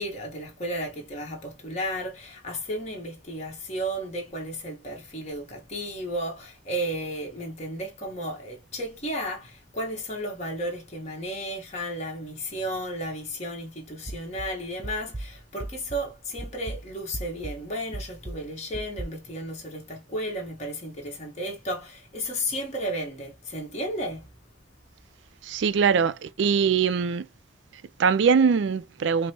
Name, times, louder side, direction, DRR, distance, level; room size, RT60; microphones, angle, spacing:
voice 1, 0.0-24.3, equal, 35° left, 1.3 m, -33 dB
sound 1, 14.1-16.1 16.4-19.1, right 1 dB, 20° right, 0.6 m, -38 dB
voice 2, 25.4-27.3 27.7-29.3, right 6 dB, 65° right, 0.4 m, -22 dB
5.2 x 2.1 x 2.8 m
head